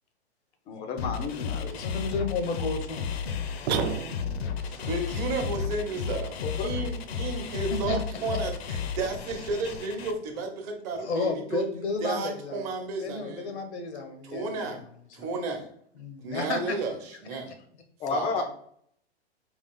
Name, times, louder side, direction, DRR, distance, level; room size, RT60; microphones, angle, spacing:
voice 1, 0.7-1.8 6.4-6.7 18.0-18.4, left 5 dB, 20° left, 5 dB, 0.4 m, -31 dB
sound 1, 1.0-10.1, left 6 dB, 70° left, 0.6 m, -33 dB
voice 2, 1.7-3.1 4.6-4.9 7.7-8.0 11.0-12.6 13.0-14.9 15.2-15.3 16.0-16.8 17.3-17.5, left 3 dB, 85° left, 6 dB, 0.9 m, -32 dB
sound 2, 3.7-4.6, right 8 dB, 70° right, 0.5 m, -30 dB
voice 3, 4.9-11.6 12.0-13.6 14.2-14.8 15.1-15.7 16.2-17.5 18.1-18.4, right 3 dB, 40° right, 3 dB, 1.0 m, -32 dB
3.8 x 2.4 x 3.7 m, 0.65 s
hypercardioid pair, 125°, 33 cm